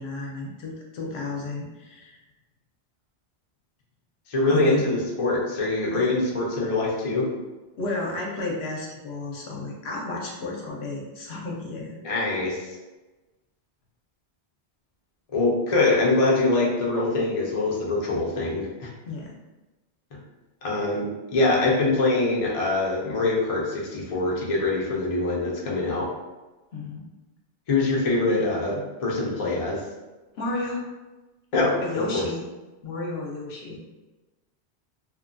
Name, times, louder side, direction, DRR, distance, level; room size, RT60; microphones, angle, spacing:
voice 1, 0.0-2.2 4.5-4.8 5.9-6.1 7.8-12.0 19.0-19.4 26.7-27.1 30.3-30.8 31.8-32.4 32.8-33.8, left 2 dB, 70° left, -2 dB, 0.8 m, -32 dB
voice 2, 4.3-7.3 12.0-12.7 15.3-18.9 20.6-26.1 27.7-29.8 31.5-31.8 32.1-32.3, left 2 dB, 45° left, -4 dB, 0.5 m, -24 dB
2.8 x 2.1 x 2.5 m, 1.1 s
omnidirectional pair, 1.1 m